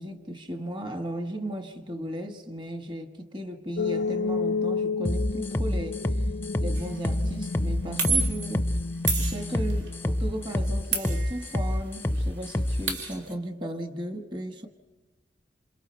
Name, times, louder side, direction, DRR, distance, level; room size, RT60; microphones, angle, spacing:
voice 1, 0.0-6.0 6.6-8.7 9.2-14.7, right 1 dB, 25° right, 6 dB, 1.5 m, -35 dB
sound 1, 3.8-10.7, left 4 dB, 80° left, 0.6 m, -32 dB
sound 2, 5.0-12.8, left 1 dB, 10° left, 0.6 m, -27 dB
sound 3, 6.7-7.0 8.0-8.5 9.1-9.9 10.9-11.8 12.1-12.2 12.4-13.3, right 4 dB, 90° right, 2.9 m, -30 dB
27.5 x 27.5 x 4.6 m, 1.1 s
head